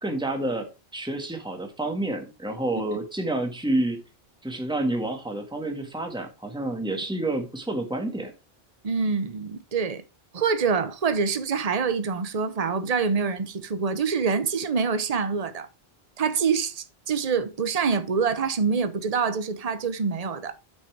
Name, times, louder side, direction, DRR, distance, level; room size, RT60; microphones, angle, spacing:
voice 1, 0.0-4.0 4.4-8.3, right 1 dB, 5° right, 1.7 m, -29 dB
voice 2, 8.8-10.0 10.3-15.7 16.2-20.6, right 5 dB, 40° right, 1.0 m, -26 dB
9.2 x 5.8 x 4.6 m
omnidirectional pair, 1.1 m